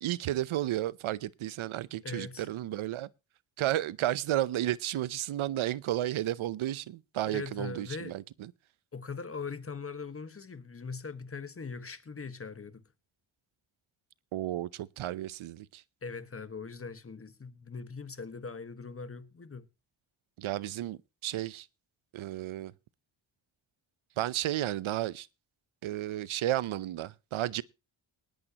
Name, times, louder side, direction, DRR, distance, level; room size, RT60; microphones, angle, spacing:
voice 1, 0.0-3.1 3.6-8.5 14.3-15.8 20.4-21.7 22.1-22.7 24.2-25.3 25.8-27.6, right 13 dB, 85° right, 0.7 m, -32 dB
voice 2, 2.0-2.5 7.3-8.2 8.9-12.8 16.0-19.7, left 5 dB, 30° left, 1.4 m, -41 dB
19.0 x 10.5 x 2.9 m
cardioid pair, 105°, 47 cm